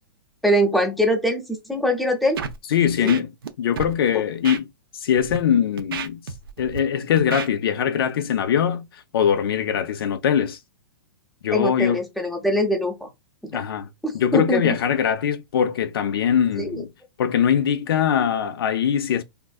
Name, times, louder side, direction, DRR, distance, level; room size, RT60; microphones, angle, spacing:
voice 1, 0.4-2.4 3.0-3.2 4.1-4.2 11.5-13.1 13.4-13.6 14.0-14.8 16.6-16.8, equal, ahead, 0.5 m, -23 dB
Scratching (performance technique), 2.4-2.6 2.9-3.5 3.8-3.9 4.4-4.6 5.2-5.4 5.8-6.8 7.2-7.5, right 6 dB, 70° right, 0.5 m, -31 dB
voice 2, 2.7-3.3 3.6-4.6 4.9-6.2 6.6-10.6 11.4-12.0 13.5-13.9 14.1-16.9 17.2-19.2, left 8 dB, 75° left, 0.4 m, -22 dB
3.5 x 2.5 x 2.2 m
hypercardioid pair, 160°, 12 cm